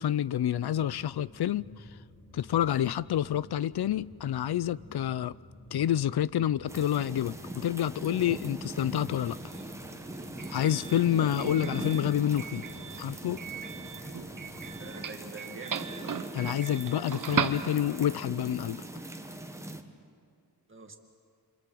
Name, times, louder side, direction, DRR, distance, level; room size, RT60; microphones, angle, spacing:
voice 1, 0.0-1.6 2.3-5.3 5.7-9.4 10.5-12.6 13.0-13.4 16.3-18.8, left 11 dB, 70° left, 0.6 m, -28 dB
sound 1, 0.5-14.8, equal, 20° left, 8.0 m, -52 dB
sound 2, 6.7-19.8, right 1 dB, 5° right, 1.2 m, -41 dB
Doorbell, 9.2-18.2, right 7 dB, 50° right, 1.1 m, -38 dB
voice 2, 14.8-16.0 20.7-21.0, right 3 dB, 30° right, 2.1 m, -45 dB
26.0 x 26.0 x 7.7 m
wide cardioid pair, 155°, 41 cm